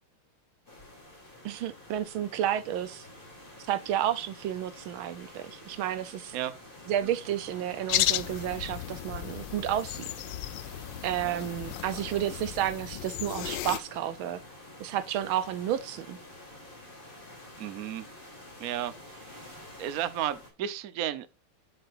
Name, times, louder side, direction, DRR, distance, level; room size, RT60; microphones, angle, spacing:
sound 1, 0.7-20.5, left 1 dB, 25° left, 3.4 m, -48 dB
voice 1, 1.4-3.1 3.7-6.3 6.9-10.0 11.0-14.4 14.8-16.2, right 11 dB, 75° right, 1.4 m, -31 dB
sound 2, 7.9-13.8, left 14 dB, 75° left, 1.2 m, -34 dB
voice 2, 17.6-18.1 18.6-19.4 19.8-21.3, right 11 dB, 60° right, 1.0 m, -33 dB
8.7 x 7.7 x 2.5 m
omnidirectional pair, 2.4 m